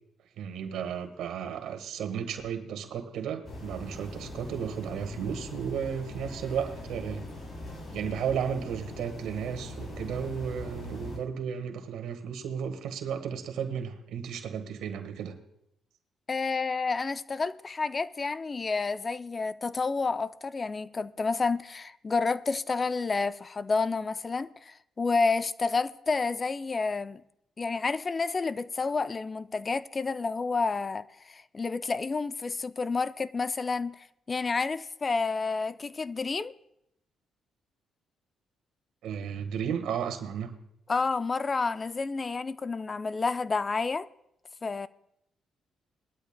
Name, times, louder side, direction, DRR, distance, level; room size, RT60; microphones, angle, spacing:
voice 1, 0.4-7.2 7.9-15.3 39.0-40.5, right 7 dB, 85° right, 1.4 m, -34 dB
sound 1, 3.4-11.2, left 1 dB, 55° left, 5.5 m, -41 dB
voice 2, 16.3-27.2 27.6-34.0 34.3-36.5 40.9-44.1 44.6-44.9, left 4 dB, 30° left, 0.4 m, -30 dB
20.5 x 12.5 x 2.2 m
cardioid pair, 90°, 0 cm